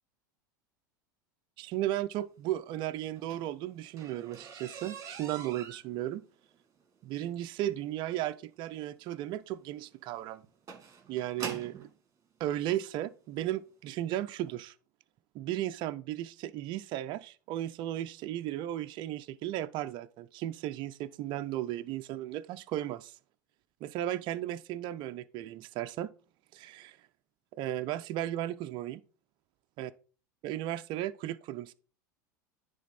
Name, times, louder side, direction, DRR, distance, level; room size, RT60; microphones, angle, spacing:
voice 1, 1.6-6.2 7.0-10.4 11.1-11.9 12.4-14.7 15.3-23.1 23.8-26.1 26.5-27.0 27.5-29.0 29.8-29.9 30.4-31.7, right 13 dB, 50° right, 0.4 m, -35 dB
sound 1, 3.0-11.9 12.8-12.9 13.5-13.7 14.0-14.1 14.4-14.5, right 6 dB, 30° right, 2.1 m, -46 dB
10.0 x 3.4 x 4.1 m
hypercardioid pair, 90°, 11 cm